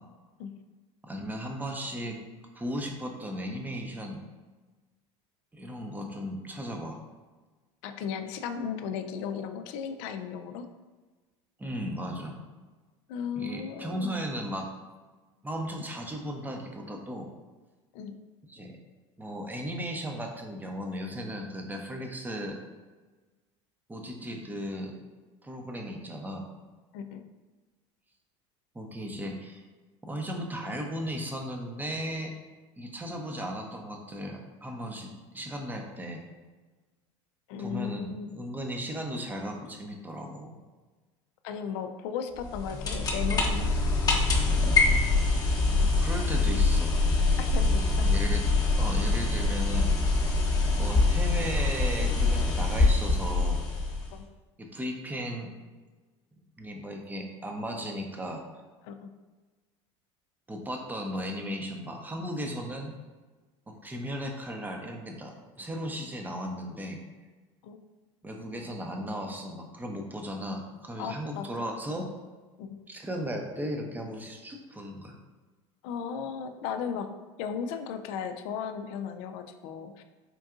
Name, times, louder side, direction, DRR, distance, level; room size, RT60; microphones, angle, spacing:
voice 1, 1.1-2.2 2.5-4.2 5.5-7.0 11.6-12.4 13.4-14.7 15.4-17.3 18.5-18.8 19.2-22.6 23.9-24.9 25.4-26.5 28.7-29.6 30.0-32.3 32.8-36.2 37.6-40.5 45.6-46.9 47.7-48.4 48.8-49.9 50.8-53.6 54.7-55.5 56.6-58.4 60.5-62.9 63.7-67.0 68.2-72.1 72.9-75.2, equal, 10° right, 2 dB, 0.6 m, -36 dB
voice 2, 7.8-10.7 13.1-14.2 17.9-18.2 26.9-27.2 37.5-38.3 41.4-43.7 47.4-48.2 54.1-54.2 58.8-59.1 67.6-67.8 71.0-71.7 72.6-72.8 75.8-77.1 77.4-80.0, left 7 dB, 70° left, 8 dB, 0.4 m, -36 dB
sound 1, 42.4-54.2, left 3 dB, 25° left, 0.8 m, -24 dB
4.4 x 2.6 x 2.4 m, 1.3 s
hypercardioid pair, 85°, 15 cm